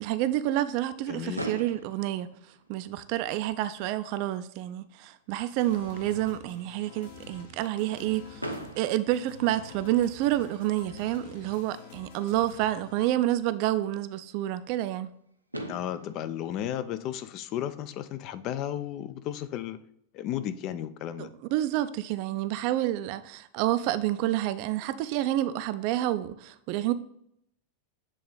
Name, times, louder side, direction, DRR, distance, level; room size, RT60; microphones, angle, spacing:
voice 1, 0.0-2.3 2.7-15.1 21.2-26.9, right 14 dB, 45° right, 0.4 m, -29 dB
voice 2, 1.1-1.4 15.7-19.8 20.1-21.3, left 11 dB, 40° left, 0.4 m, -34 dB
Fireworks, 1.3-3.4 4.2-4.3 4.5-4.7 5.0-5.1 8.4-10.2 11.9-12.0 15.1-15.2 15.5-17.8, right 1 dB, 90° right, 0.6 m, -41 dB
sound 1, 5.6-13.1, left 5 dB, 60° left, 1.2 m, -48 dB
7.5 x 3.8 x 3.9 m
figure-of-eight pair, 90°, 0 cm